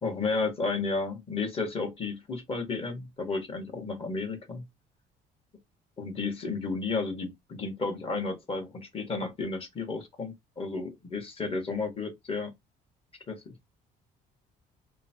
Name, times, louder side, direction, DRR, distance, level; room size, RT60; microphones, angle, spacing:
voice 1, 0.0-4.6 6.0-12.5 13.3-13.5, left 4 dB, 35° left, 1.1 m, -32 dB
3.0 x 2.1 x 2.8 m
cardioid pair, 110°, 17 cm